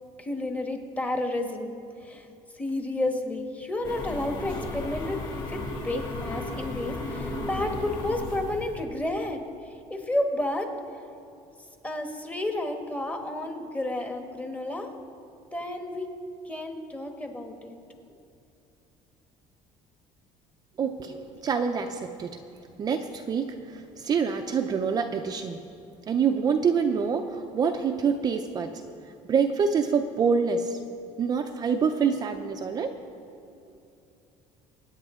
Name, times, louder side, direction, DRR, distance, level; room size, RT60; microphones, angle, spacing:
voice 1, 0.2-2.3 2.5-5.2 5.5-10.7 11.8-14.9 15.5-16.1 16.4-17.7 21.1-21.2, left 1 dB, 10° left, 4 dB, 1.2 m, -31 dB
sound 1, 3.8-8.8, left 2 dB, 35° left, 2.7 m, -34 dB
voice 2, 20.8-22.4 22.8-25.6 26.1-28.8 29.3-30.8 31.2-32.9, right 6 dB, 30° right, 5 dB, 0.5 m, -26 dB
24.5 x 9.2 x 3.7 m, 2.7 s
cardioid pair, 150°, 13 cm